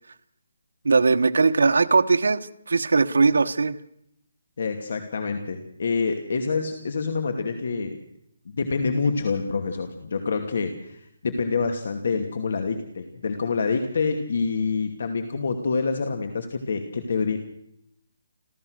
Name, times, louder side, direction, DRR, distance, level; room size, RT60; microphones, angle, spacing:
voice 1, 0.8-2.4 2.7-3.8, right 4 dB, 90° right, 6 dB, 1.2 m, -19 dB
voice 2, 4.6-8.0 8.5-17.4, left 4 dB, 55° left, 6 dB, 2.6 m, -27 dB
29.5 x 14.0 x 6.5 m, 0.75 s
hypercardioid pair, 175°, 0 cm